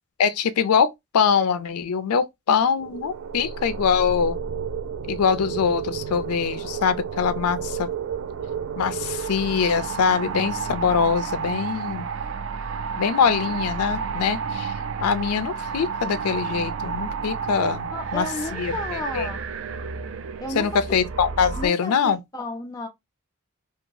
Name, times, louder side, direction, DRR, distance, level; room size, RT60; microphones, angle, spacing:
voice 1, 0.2-4.4 5.1-7.9 8.8-12.1 13.0-14.7 15.0-18.3 18.5-19.3 20.5-22.2, left 6 dB, 85° left, 0.4 m, -23 dB
sound 1, 2.8-21.7, right 6 dB, 60° right, 0.3 m, -31 dB
voice 2, 17.9-19.4 20.4-21.0 21.6-22.9, left 1 dB, 15° left, 0.6 m, -33 dB
2.8 x 2.3 x 2.5 m
head